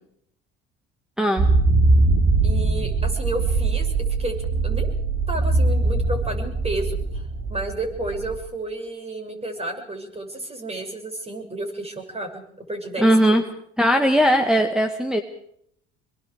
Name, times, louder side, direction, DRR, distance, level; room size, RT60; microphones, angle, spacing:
sound 1, 1.4-8.4, right 3 dB, 45° right, 5.0 m, -21 dB
voice 1, 2.4-3.9 4.2-4.4 4.6-4.9 5.3-13.4, right 2 dB, 20° right, 3 dB, 7.6 m, -31 dB
voice 2, 13.0-13.4 13.8-15.2, equal, ahead, 2 dB, 2.1 m, -18 dB
25.5 x 23.0 x 5.0 m, 0.67 s
hypercardioid pair, 70°, 32 cm